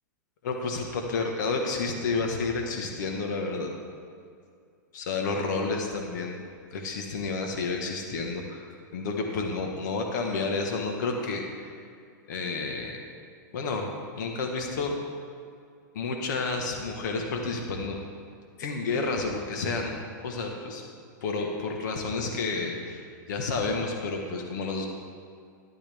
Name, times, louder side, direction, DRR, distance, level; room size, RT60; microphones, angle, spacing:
voice 1, 0.4-3.7 4.9-6.4 6.7-11.7 12.3-13.0 13.5-15.0 15.9-18.0 18.6-20.0 20.2-20.8 21.2-24.9, left 3 dB, 65° left, 2 dB, 1.4 m, -30 dB
12.0 x 11.5 x 3.5 m, 2.3 s
hypercardioid pair, 145°, 11 cm